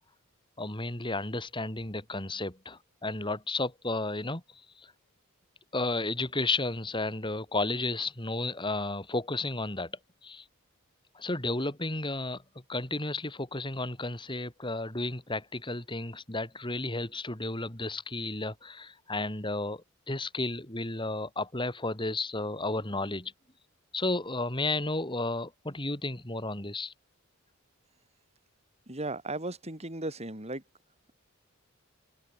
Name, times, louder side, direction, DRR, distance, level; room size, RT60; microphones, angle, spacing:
voice 1, 0.6-4.9 5.7-9.9 10.2-10.4 11.1-12.4 12.7-23.3 23.9-26.9, left 2 dB, 25° left, 3.9 m, -33 dB
voice 2, 28.9-30.6, right 2 dB, 30° right, 5.5 m, -36 dB
head